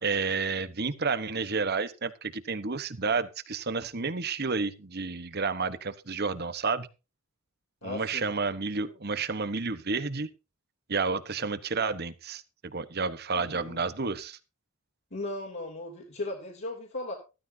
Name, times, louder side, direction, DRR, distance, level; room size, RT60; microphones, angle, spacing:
voice 1, 0.0-6.9 7.8-10.3 10.9-14.4, right 4 dB, 50° right, 13 dB, 1.1 m, -30 dB
voice 2, 7.8-8.3 13.3-13.8 15.1-17.1, left 2 dB, 55° left, -3 dB, 3.3 m, -37 dB
15.0 x 14.0 x 2.8 m, 0.30 s
head